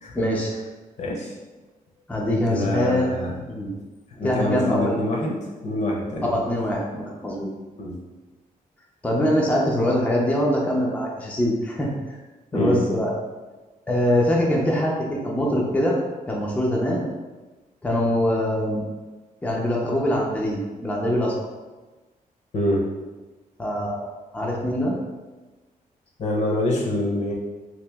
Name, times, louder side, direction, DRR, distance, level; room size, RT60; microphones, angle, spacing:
voice 1, 0.1-0.5 2.1-3.1 3.5-3.7 4.2-5.0 6.3-7.5 9.0-12.2 12.5-13.1 13.9-16.0 16.3-17.1 17.8-18.8 19.4-21.3 23.6-24.1 24.3-25.0, equal, 10° left, -3 dB, 0.4 m, -23 dB
voice 2, 1.0-1.4 2.5-3.4 4.1-5.3 5.6-6.4 7.8-8.0 12.5-12.8 22.5-22.8 26.2-27.3, left 1 dB, 50° left, -1 dB, 0.7 m, -25 dB
2.9 x 2.6 x 3.3 m, 1.2 s
wide cardioid pair, 130°, 15 cm